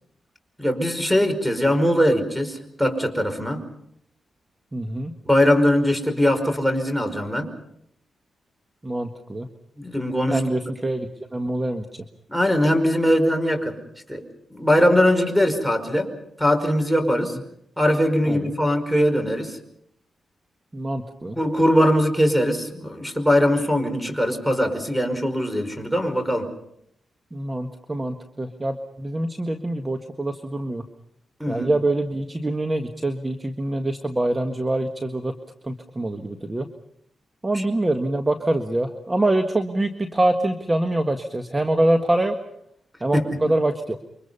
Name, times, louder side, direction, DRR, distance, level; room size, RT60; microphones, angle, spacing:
voice 1, 0.6-3.6 5.2-7.5 9.8-10.4 12.3-13.8 14.1-14.2 14.5-16.1 16.4-17.4 17.8-19.6 21.3-26.5 31.4-31.7 37.5-37.6 43.1-43.2, equal, ahead, 9 dB, 5.1 m, -21 dB
voice 2, 4.7-5.1 8.8-9.5 10.3-11.8 18.3-18.5 20.7-21.4 27.3-30.8 31.5-35.3 35.6-36.7 37.4-42.3 43.0-44.0, right 1 dB, 20° right, 6 dB, 1.7 m, -25 dB
29.0 x 24.5 x 5.6 m, 0.73 s
cardioid pair, 75°, 0 cm